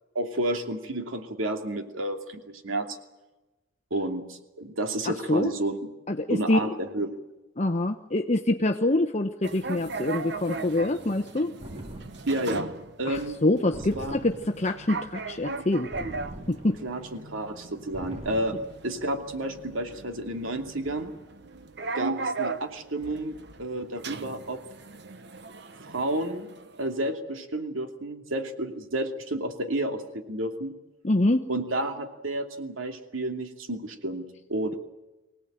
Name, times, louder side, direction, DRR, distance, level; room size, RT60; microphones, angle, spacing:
voice 1, 0.1-3.0 3.9-5.9 6.3-7.2 12.3-12.7 13.0-13.4 13.6-14.2 16.8-18.6 18.8-21.1 21.9-24.6 25.9-26.5 26.8-30.7 31.5-34.8, right 1 dB, 90° right, 6 dB, 2.7 m, -31 dB
voice 2, 5.1-5.5 6.1-6.7 7.6-11.5 13.1-15.9 16.5-16.8 31.0-31.4, left 2 dB, 35° left, 5 dB, 0.9 m, -25 dB
sound 1, 9.4-26.9, right 3 dB, 55° right, 1.1 m, -38 dB
sound 2, 11.6-12.5 13.7-14.7 15.9-16.9 17.9-18.8, right 1 dB, 30° right, 3.2 m, -41 dB
24.5 x 17.5 x 9.1 m, 1.1 s
head